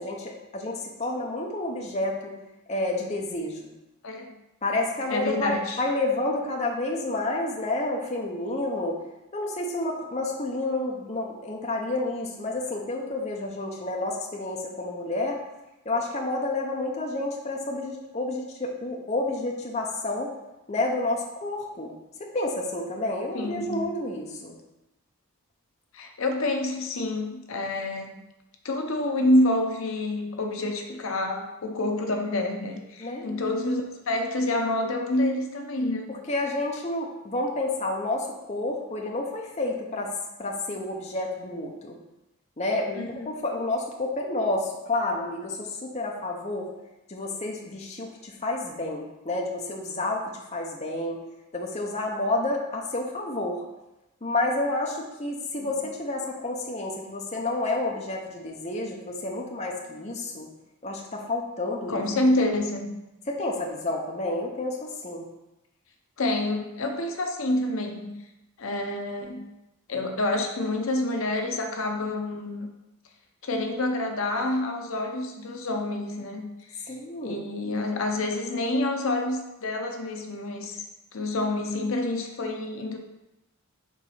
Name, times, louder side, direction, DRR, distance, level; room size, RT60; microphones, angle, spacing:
voice 1, 0.0-2.3 2.7-3.7 4.6-9.0 9.3-15.4 15.9-20.3 20.7-21.9 22.2-24.5 33.0-33.3 36.1-40.1 40.4-42.0 42.6-46.7 47.1-50.3 50.5-51.2 51.5-53.6 54.2-60.5 60.8-62.0 63.3-65.3 76.9-77.4, left 2 dB, 30° left, 0 dB, 0.7 m, -30 dB
voice 2, 5.1-5.8 23.3-23.9 25.9-28.2 28.6-36.1 43.0-43.2 55.6-55.7 61.9-62.9 66.2-68.1 68.6-69.5 69.9-72.7 73.4-76.4 76.7-76.8 77.2-80.8 81.1-83.0, left 1 dB, 65° left, 3 dB, 0.7 m, -27 dB
4.6 x 3.9 x 5.6 m, 0.95 s
head